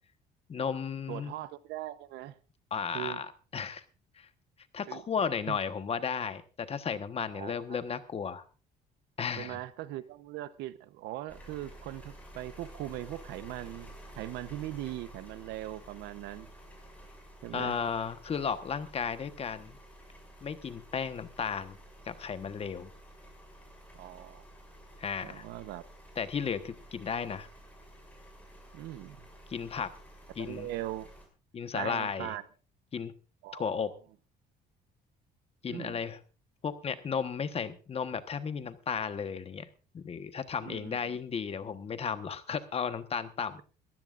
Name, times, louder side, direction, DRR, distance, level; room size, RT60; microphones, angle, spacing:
voice 1, 0.5-1.3 2.7-3.8 4.2-4.3 4.7-8.4 9.2-9.6 17.5-19.8 20.4-21.8 22.1-22.9 25.0-25.4 26.2-27.5 29.5-29.9 30.4-30.7 31.5-32.3 32.9-33.1 33.5-33.9 35.6-36.2 36.6-39.7 39.9-43.6, left 6 dB, 35° left, 11 dB, 1.3 m, -34 dB
voice 2, 1.1-2.4 2.9-3.2 4.9-5.0 5.5-5.6 7.3-7.8 9.4-16.5 17.4-17.8 23.9-24.4 25.2-25.8 28.7-29.3 30.4-31.1 31.7-32.4 33.4-33.8 35.7-36.0 40.6-41.0, right 14 dB, 90° right, 14 dB, 1.0 m, -40 dB
sound 1, 11.3-31.3, right 1 dB, 10° left, 6.4 m, -52 dB
21.5 x 15.0 x 2.6 m, 0.34 s
cardioid pair, 110°, 17 cm